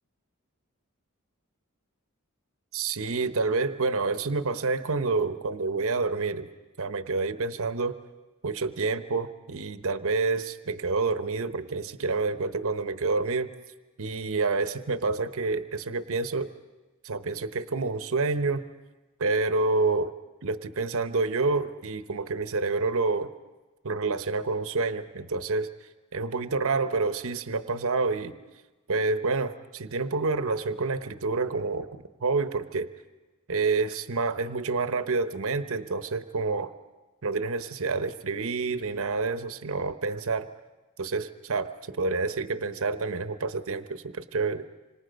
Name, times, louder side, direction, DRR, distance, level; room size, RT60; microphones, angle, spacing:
voice 1, 2.7-6.5 6.8-8.0 8.4-13.5 14.0-16.5 17.0-18.6 19.2-20.1 20.4-23.3 23.8-25.7 26.1-28.3 28.9-31.9 32.2-32.9 33.5-36.7 37.2-40.5 41.0-44.7, right 3 dB, 65° right, 10 dB, 0.9 m, -28 dB
26.5 x 26.0 x 5.2 m, 1.1 s
head